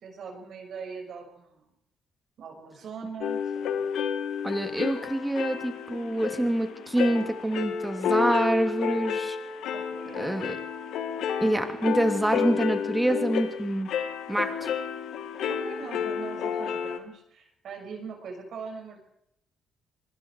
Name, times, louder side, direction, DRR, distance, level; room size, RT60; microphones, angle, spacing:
voice 1, 0.0-1.7 2.4-3.8 9.7-10.3 15.5-19.1, right 5 dB, 65° right, 3 dB, 6.3 m, -41 dB
sound 1, 3.2-17.0, left 8 dB, 80° left, 2.0 m, -31 dB
voice 2, 4.4-9.4 10.2-10.6 11.4-13.9 14.3-14.7, right 1 dB, 10° right, 6 dB, 3.1 m, -26 dB
26.0 x 21.0 x 4.8 m, 0.78 s
cardioid pair, 90°, 0 cm